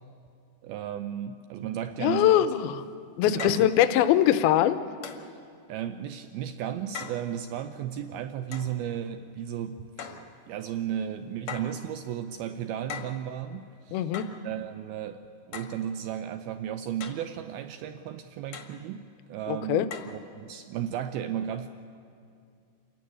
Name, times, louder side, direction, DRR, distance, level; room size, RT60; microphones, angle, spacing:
voice 1, 0.6-2.5 3.3-3.7 5.7-10.2 10.5-14.1 14.4-15.2 15.5-21.7, right 9 dB, 85° right, 9 dB, 2.2 m, -34 dB
voice 2, 2.0-2.8 3.2-4.8 13.9-14.3 19.5-19.9, left 12 dB, 75° left, 11 dB, 2.3 m, -22 dB
sound 1, 2.5-2.6 3.4-3.7 5.0-5.3 6.9-7.2 8.5-8.7 10.0-10.3 11.5-11.8 12.9-13.2 14.1-14.4 15.5-15.8 17.0-17.3 18.5-18.8 19.9-20.2, left 6 dB, 60° left, 1.8 m, -39 dB
27.0 x 15.0 x 10.0 m, 2.4 s
omnidirectional pair, 5.1 m